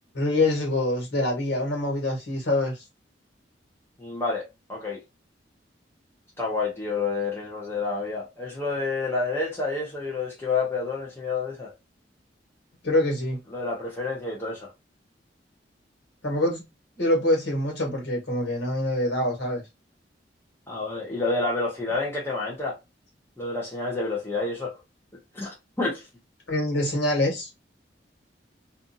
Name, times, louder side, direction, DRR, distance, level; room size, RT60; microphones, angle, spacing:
voice 1, 0.1-2.7 12.8-13.4 16.2-16.6 17.0-19.6 26.5-27.5, left 1 dB, 85° left, 1.4 m, -25 dB
voice 2, 4.0-5.0 6.4-11.7 13.5-14.7 20.7-22.8 23.4-24.8 25.3-26.1, left 3 dB, 15° left, 0.7 m, -29 dB
2.6 x 2.4 x 2.6 m
head